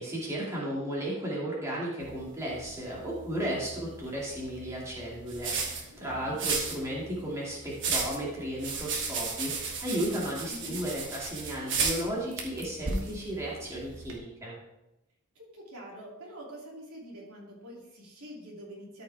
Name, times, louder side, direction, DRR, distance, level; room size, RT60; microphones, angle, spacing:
voice 1, 0.0-14.6, right 1 dB, 15° right, -6 dB, 2.2 m, -34 dB
sound 1, 2.0-14.2, right 4 dB, 55° right, 1.4 m, -35 dB
voice 2, 5.9-6.4 10.5-10.8 15.3-19.0, right 1 dB, 85° right, -4 dB, 2.7 m, -46 dB
13.0 x 5.6 x 3.4 m, 0.94 s
head